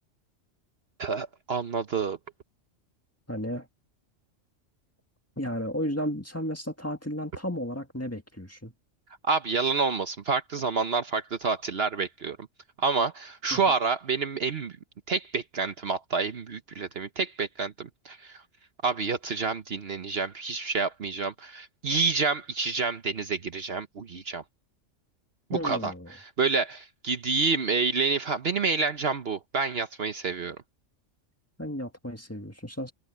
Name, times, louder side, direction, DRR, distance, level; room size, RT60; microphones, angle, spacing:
voice 1, 1.0-2.2 9.3-12.4 12.8-14.8 15.1-18.4 18.8-24.4 25.5-30.6, right 4 dB, 55° right, 1.1 m, -28 dB
voice 2, 3.3-3.7 5.4-8.7 13.5-13.6 25.5-26.1 31.6-32.9, equal, 10° left, 1.9 m, -33 dB
omnidirectional pair, 1.3 m